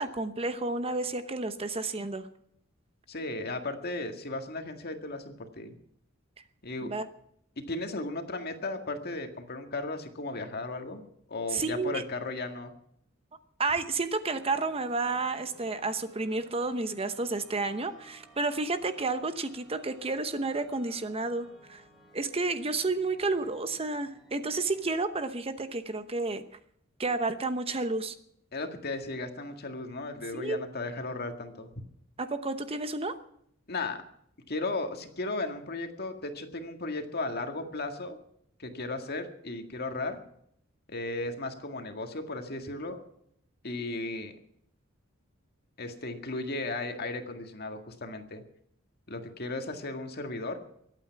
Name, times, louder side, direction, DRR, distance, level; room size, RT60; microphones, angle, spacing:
voice 1, 0.0-2.3 6.8-7.1 11.5-12.0 13.6-21.8 22.1-26.4 27.0-28.1 30.3-30.6 32.2-33.2, right 3 dB, 30° right, 10 dB, 0.9 m, -31 dB
voice 2, 3.1-5.7 6.6-6.9 7.7-11.0 11.3-12.7 28.5-31.7 33.7-34.0 34.5-38.2 38.6-40.2 40.9-43.0 43.6-44.3 45.8-48.4 49.1-50.6, left 2 dB, 50° left, 6 dB, 1.9 m, -35 dB
sound 1, 14.4-24.8, right 1 dB, ahead, 3.7 m, -58 dB
23.0 x 9.0 x 5.9 m, 0.70 s
head